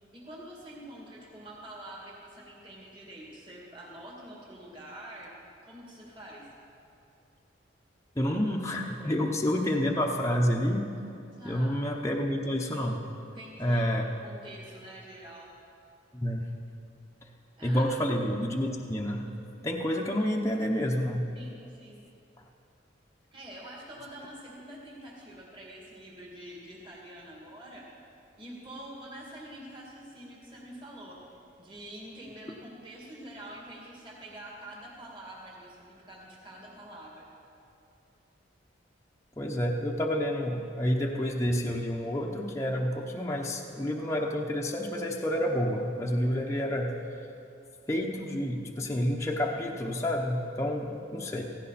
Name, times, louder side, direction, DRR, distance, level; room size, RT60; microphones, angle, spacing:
voice 1, 0.1-5.3 5.6-6.5 11.3-11.8 13.2-15.5 17.6-18.0 21.3-22.0 23.3-27.9 28.4-31.2 31.6-37.3, right 1 dB, 25° right, -4 dB, 2.4 m, -46 dB
voice 2, 8.1-10.9 11.4-13.0 13.6-14.1 16.1-16.4 17.6-19.2 19.6-21.2 39.4-46.9 47.9-51.4, equal, 15° left, -1 dB, 0.9 m, -29 dB
17.0 x 15.5 x 4.2 m, 2.6 s
head